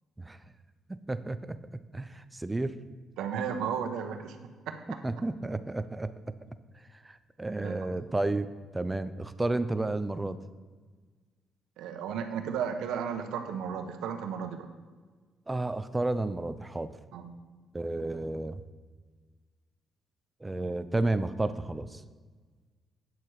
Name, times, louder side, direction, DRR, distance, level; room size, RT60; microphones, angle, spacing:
voice 1, 0.9-1.6 1.9-2.8 5.0-6.1 7.0-8.5 8.7-10.4 15.5-16.9 17.7-18.6 20.4-22.0, right 2 dB, 15° right, 12 dB, 0.6 m, -31 dB
voice 2, 3.2-4.4 4.7-5.0 7.6-7.7 11.8-14.7 17.1-17.3, right 7 dB, 90° right, 6 dB, 1.0 m, -34 dB
9.3 x 7.1 x 4.9 m, 1.4 s
cardioid pair, 90°, 0 cm